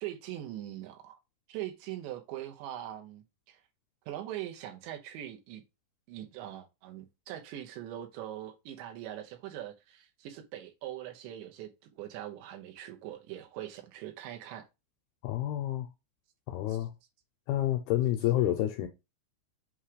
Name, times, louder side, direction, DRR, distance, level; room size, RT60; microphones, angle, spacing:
voice 1, 0.0-1.2 1.5-3.6 4.1-5.6 6.1-11.7 12.0-14.7 16.7-16.8, right 12 dB, 80° right, 3.3 m, -42 dB
voice 2, 15.2-15.9 16.5-16.9 17.5-18.9, left 13 dB, 85° left, 2.3 m, -29 dB
8.1 x 3.0 x 4.8 m
omnidirectional pair, 5.1 m